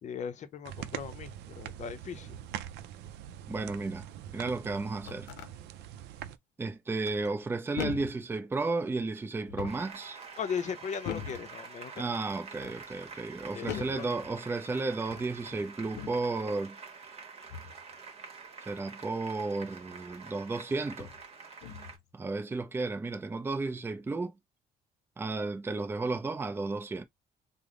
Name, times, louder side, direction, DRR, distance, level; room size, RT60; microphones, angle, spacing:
voice 1, 0.0-2.4 10.4-12.1 13.5-14.2, left 7 dB, 45° left, 0.6 m, -38 dB
sound 1, 0.6-6.4, right 11 dB, 85° right, 0.4 m, -43 dB
voice 2, 3.5-5.3 6.6-10.2 12.0-16.8 18.7-21.1 22.1-24.3 25.2-27.0, right 3 dB, 15° right, 0.5 m, -33 dB
sound 2, 5.1-5.5 7.0-7.4 7.8-8.3 9.4-10.0 11.0-11.5 12.3-12.8 13.7-14.1 15.0-15.4 15.9-16.3 17.5-17.8 19.9-20.0 20.9-21.2 21.6-22.0, left 9 dB, 85° left, 0.6 m, -41 dB
Applause, 9.7-22.0, right 5 dB, 40° right, 1.1 m, -47 dB
3.3 x 2.1 x 3.7 m
cardioid pair, 110°, 17 cm